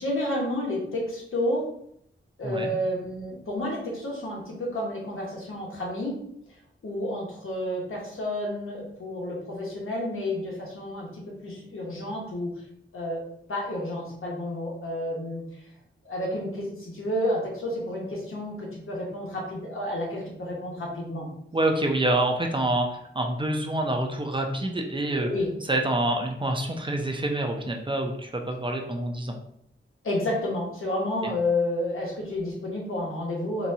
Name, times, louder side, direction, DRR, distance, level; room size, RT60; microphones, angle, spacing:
voice 1, 0.0-1.6 2.4-6.2 6.8-12.5 12.9-13.2 13.5-15.4 16.0-21.3 25.2-25.5 30.0-33.7, left 1 dB, 90° left, -3 dB, 1.1 m, -30 dB
voice 2, 21.5-25.3 25.7-29.4, right 1 dB, 25° right, 2 dB, 0.5 m, -27 dB
4.0 x 2.3 x 2.7 m, 0.71 s
wide cardioid pair, 100°, 21 cm